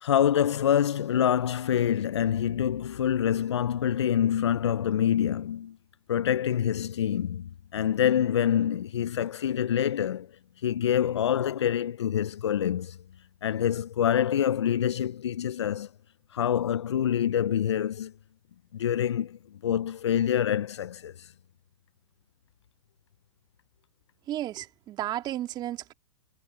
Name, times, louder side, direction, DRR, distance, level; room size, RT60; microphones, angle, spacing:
voice 1, 0.0-5.8 6.1-10.3 10.6-13.0 13.4-15.9 16.3-18.1 18.7-21.3, left 9 dB, 85° left, 0.5 m, -26 dB
voice 2, 24.3-25.9, right 13 dB, 30° right, 2.2 m, -33 dB
hypercardioid pair, 120°, 14 cm